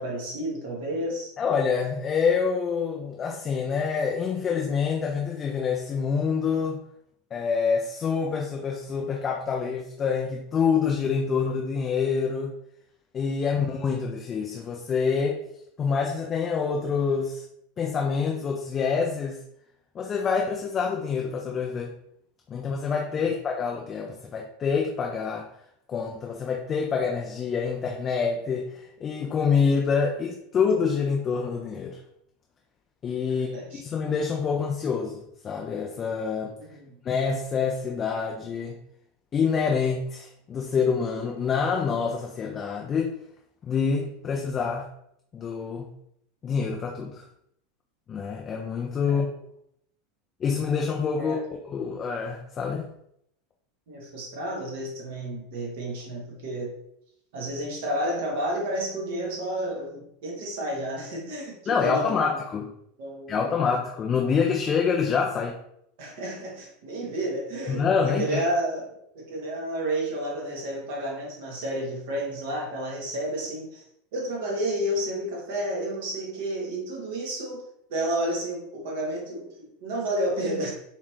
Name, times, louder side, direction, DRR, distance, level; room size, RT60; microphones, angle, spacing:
voice 1, 0.0-1.3 23.1-23.2 33.3-33.8 36.6-37.0 49.0-49.3 51.1-51.4 53.9-56.7 57.3-62.3 63.0-63.6 66.0-73.8 74.1-80.7, right 1 dB, 60° right, -1 dB, 1.3 m, -31 dB
voice 2, 1.4-6.8 7.3-12.6 13.1-15.4 15.8-17.4 17.8-19.4 19.9-21.9 22.5-25.5 25.9-32.0 33.0-36.5 37.0-38.8 39.3-43.1 43.6-44.9 45.3-45.9 46.4-47.2 48.1-49.3 50.4-51.4 51.6-52.9 61.7-62.7 63.3-65.6 67.7-68.4, left 5 dB, 30° left, 0 dB, 0.5 m, -26 dB
4.1 x 3.1 x 3.1 m, 0.75 s
figure-of-eight pair, 80°, 0 cm